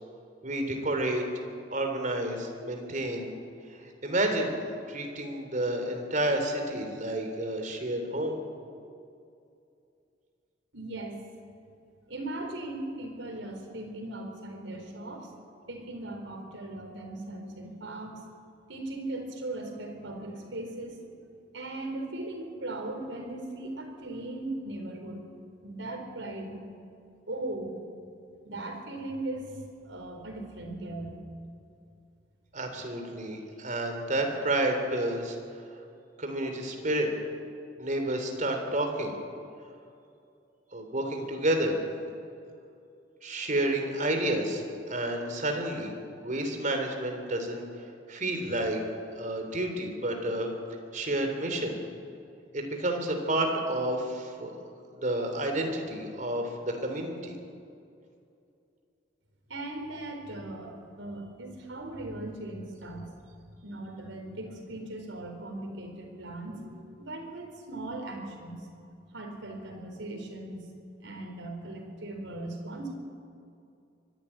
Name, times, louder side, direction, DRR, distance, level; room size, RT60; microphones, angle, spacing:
voice 1, 0.4-1.2 1.7-3.3 3.7-4.6 4.9-8.4 32.5-35.4 36.2-37.1 37.8-39.2 40.7-41.7 43.2-44.6 44.9-45.9 46.2-47.6 48.1-48.8 49.1-50.5 50.9-51.8 52.5-54.5 55.0-57.3, right 1 dB, 45° right, 4 dB, 3.2 m, -30 dB
voice 2, 10.7-11.2 12.1-15.3 15.6-18.2 18.7-21.1 21.5-25.2 25.6-26.6 27.3-27.8 28.4-31.2 59.5-63.1 63.6-68.7 69.1-70.6 71.0-72.9, right 2 dB, 85° right, 2 dB, 4.2 m, -38 dB
24.0 x 11.5 x 9.9 m, 2.5 s
head